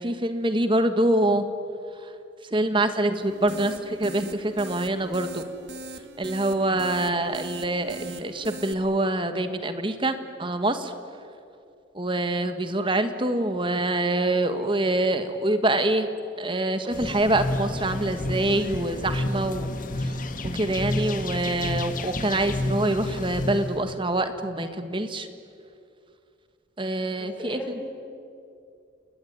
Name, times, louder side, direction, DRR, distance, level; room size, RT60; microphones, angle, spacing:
voice 1, 0.0-1.4 2.0-2.1 2.5-5.4 6.2-10.9 11.9-16.1 16.4-19.7 20.0-25.3 26.8-27.8, right 1 dB, 25° right, 9 dB, 1.5 m, -25 dB
sound 1, 3.2-8.7, right 2 dB, 70° right, 1.8 m, -41 dB
sound 2, 16.9-23.8, left 3 dB, 45° left, 1.8 m, -37 dB
sound 3, 17.0-23.9, left 1 dB, 25° left, 1.6 m, -31 dB
voice 2, 27.2-27.9, equal, 10° left, -3 dB, 5.6 m, -38 dB
28.5 x 20.5 x 9.4 m, 2.5 s
head